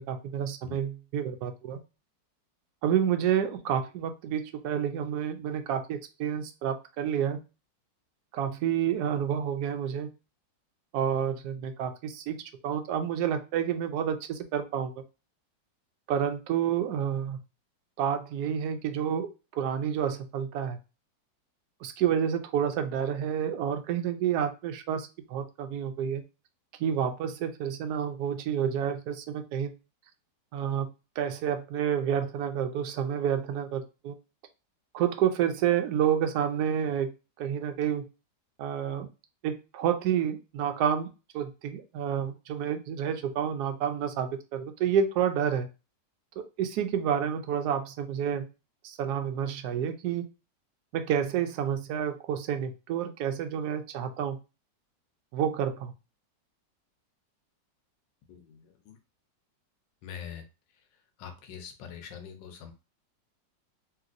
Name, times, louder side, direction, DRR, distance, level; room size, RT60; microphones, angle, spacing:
voice 1, 0.1-1.8 2.8-7.4 8.3-10.1 10.9-12.4 12.6-14.9 16.1-17.4 18.0-19.3 19.5-20.8 21.8-26.2 26.8-29.7 30.5-30.9 31.2-34.1 34.9-37.1 37.4-38.0 38.6-39.1 39.4-41.1 41.3-45.7 46.4-48.4 48.8-50.2 50.9-54.4 55.3-55.9, right 9 dB, 70° right, 7 dB, 1.0 m, -29 dB
voice 2, 58.3-59.0 60.0-60.4 61.2-62.7, left 8 dB, 85° left, 5 dB, 1.4 m, -43 dB
3.2 x 2.9 x 2.5 m, 0.29 s
omnidirectional pair, 1.9 m